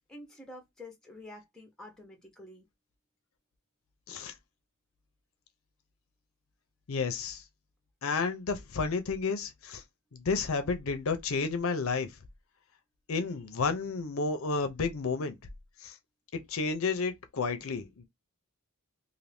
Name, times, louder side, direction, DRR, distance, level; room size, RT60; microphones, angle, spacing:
voice 1, 0.1-2.7, left 1 dB, 5° left, 0.9 m, -48 dB
voice 2, 6.9-7.4 8.0-9.8 10.1-12.2 13.1-15.4 15.8-16.0 16.3-18.1, left 4 dB, 65° left, 0.6 m, -31 dB
2.6 x 2.6 x 3.3 m
head